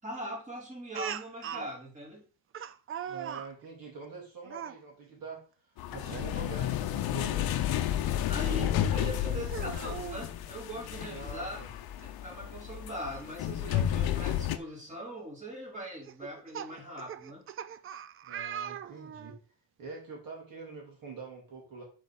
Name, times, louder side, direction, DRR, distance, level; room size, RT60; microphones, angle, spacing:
voice 1, 0.0-2.3 8.3-11.6 12.2-17.4, equal, 15° right, -3 dB, 4.0 m, -41 dB
Speech, 0.9-1.7 2.5-3.5 4.4-4.8 6.0-6.3 6.7-6.8 8.5-8.6 9.4-10.2 11.6-11.7 12.0-12.1 14.0-14.1 14.7-14.9 16.0-19.4, right 9 dB, 30° right, 0.4 m, -40 dB
voice 2, 3.0-5.4 5.9-7.6 8.3-9.4 11.1-11.7 18.3-19.4 19.8-21.8, right 4 dB, 50° right, -2 dB, 3.1 m, -45 dB
sound 1, 5.8-14.6, left 11 dB, 55° left, 0.9 m, -32 dB
7.0 x 4.5 x 6.4 m, 0.39 s
cardioid pair, 145°, 44 cm